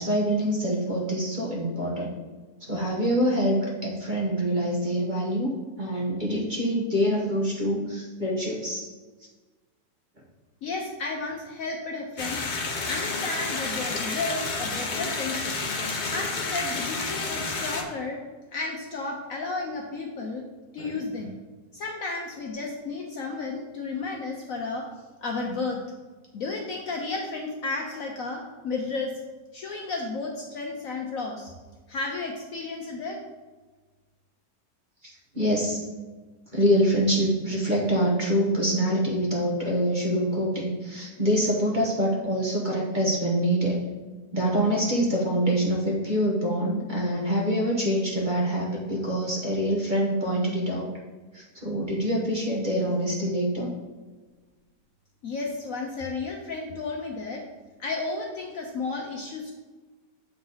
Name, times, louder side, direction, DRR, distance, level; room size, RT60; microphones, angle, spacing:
voice 1, 0.0-2.1 2.6-8.9 20.8-21.0 35.0-35.8 36.5-43.8 44.3-50.9 51.3-53.7, equal, 35° right, -3 dB, 1.0 m, -25 dB
voice 2, 10.6-12.4 12.9-15.5 16.1-18.2 18.5-20.4 20.7-21.3 21.7-24.8 25.2-25.8 26.3-29.1 29.5-31.5 31.9-33.2 55.2-57.4 57.8-59.5, left 3 dB, 65° left, 1 dB, 0.9 m, -32 dB
sound 1, 12.2-17.8, left 3 dB, 85° left, 0.4 m, -30 dB
7.5 x 4.0 x 3.9 m, 1.3 s
omnidirectional pair, 1.9 m